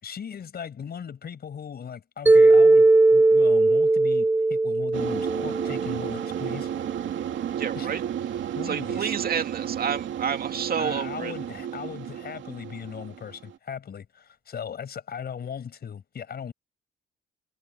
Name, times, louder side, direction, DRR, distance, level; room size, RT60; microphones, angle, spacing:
voice 1, 0.0-6.7 7.8-7.9 8.6-9.2 10.8-16.5, left 7 dB, 55° left, 5.2 m, -38 dB
Mallet percussion, 2.3-6.4, right 2 dB, 10° right, 0.5 m, -19 dB
sound 1, 4.9-13.6, right 10 dB, 70° right, 2.6 m, -33 dB
voice 2, 7.6-8.0 8.6-11.3, right 7 dB, 50° right, 2.3 m, -29 dB
cardioid pair, 90°, 20 cm